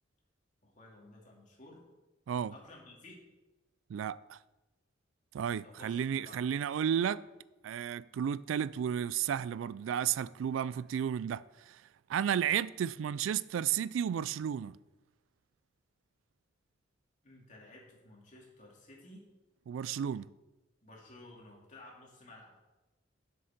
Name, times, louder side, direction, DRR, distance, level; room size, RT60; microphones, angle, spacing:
voice 1, 0.6-1.8 2.5-3.2 5.6-6.4 17.2-19.3 20.8-22.6, left 2 dB, 40° left, 2.6 m, -54 dB
voice 2, 3.9-4.4 5.3-7.2 7.6-11.8 12.1-14.7 19.7-20.3, right 9 dB, 80° right, 0.3 m, -33 dB
7.5 x 6.5 x 5.8 m
head